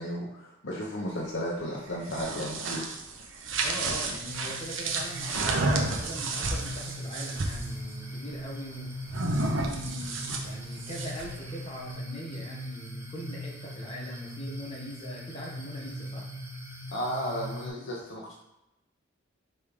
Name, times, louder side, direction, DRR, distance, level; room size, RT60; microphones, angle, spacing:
voice 1, 0.0-2.9 16.9-18.3, equal, 65° left, -3 dB, 1.0 m, -34 dB
sound 1, 1.9-7.7 9.1-11.4, right 2 dB, 75° right, 0.9 m, -31 dB
voice 2, 3.6-8.9 9.2-10.1 10.4-16.3, equal, 30° left, -3 dB, 1.4 m, -41 dB
sound 2, 4.3-17.7, equal, 15° right, 0.9 m, -40 dB
5.4 x 3.6 x 4.9 m, 0.91 s
head